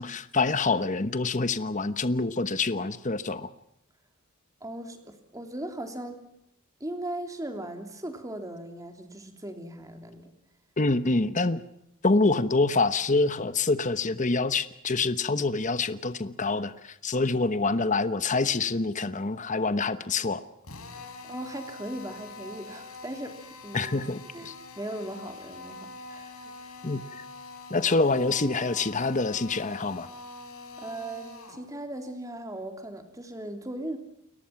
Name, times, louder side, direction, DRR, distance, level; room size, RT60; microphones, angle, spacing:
voice 1, 0.0-3.5 10.8-11.6 12.0-20.4 23.7-24.5 26.8-27.2 27.7-30.1, left 3 dB, 35° left, 12 dB, 1.1 m, -26 dB
voice 2, 4.6-6.2 6.8-10.3 21.2-23.4 23.6-24.1 24.3-26.8 30.8-34.0, right 1 dB, 15° right, 6 dB, 3.2 m, -38 dB
Drill, 20.6-31.7, left 3 dB, 90° left, 5.5 m, -44 dB
30.0 x 22.5 x 5.9 m, 0.77 s
head